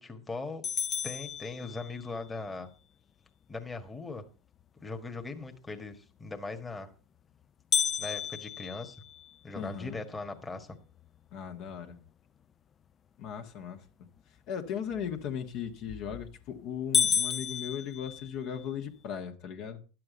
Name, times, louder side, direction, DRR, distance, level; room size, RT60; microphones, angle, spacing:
voice 1, 0.0-0.6 1.0-2.7 3.5-4.3 4.8-6.9 8.0-9.0 9.4-10.8, left 3 dB, 15° left, 1.6 m, -39 dB
sound 1, 0.6-2.2 7.7-9.9 10.4-10.5 11.0-11.1 11.7-12.1 15.7-16.1 16.5-16.6 16.9-18.7, left 7 dB, 30° left, 0.5 m, -31 dB
voice 2, 9.5-10.0 11.3-12.0 13.2-13.8 14.5-19.8, left 8 dB, 55° left, 1.5 m, -37 dB
11.0 x 7.7 x 5.1 m
hypercardioid pair, 105°, 0 cm